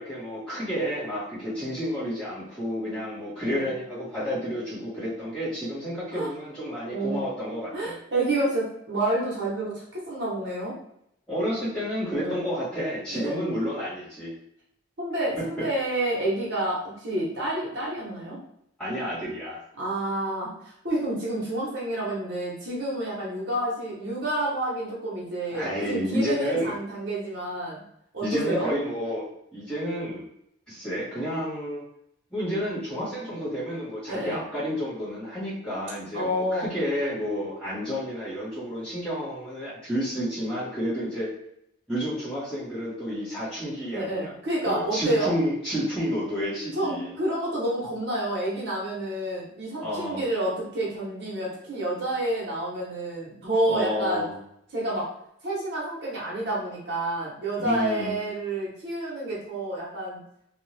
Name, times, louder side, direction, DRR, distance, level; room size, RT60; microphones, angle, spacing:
voice 1, 0.0-7.9 11.3-14.3 15.4-15.6 18.8-19.6 25.5-26.7 28.2-29.2 29.5-30.2 30.7-31.8 32.3-41.3 41.9-44.3 44.6-47.1 49.8-50.2 53.7-54.3 57.6-58.1, equal, 5° left, -13 dB, 1.5 m, -30 dB
voice 2, 6.9-7.2 7.7-10.8 12.1-12.4 13.1-13.4 15.0-18.4 19.8-27.8 28.1-28.7 34.1-34.4 36.1-36.7 43.9-45.3 46.7-54.2 54.7-55.1 55.4-60.2, right 1 dB, 60° right, -5 dB, 0.9 m, -29 dB
2.7 x 2.3 x 3.2 m, 0.73 s
head